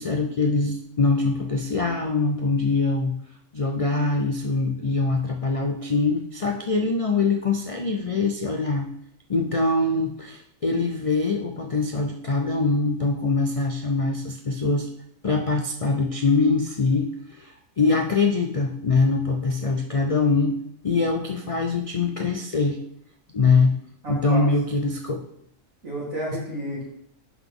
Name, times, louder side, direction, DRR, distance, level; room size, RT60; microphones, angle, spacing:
voice 1, 0.0-3.2 3.5-8.9 9.3-14.9 15.2-20.6 20.8-22.8 23.3-23.7 24.1-25.3, left 3 dB, 65° left, 3 dB, 0.3 m, -23 dB
voice 2, 24.0-24.4 25.8-26.8, right 1 dB, 70° right, -8 dB, 3.9 m, -31 dB
10.5 x 4.0 x 3.6 m, 0.71 s
omnidirectional pair, 1.4 m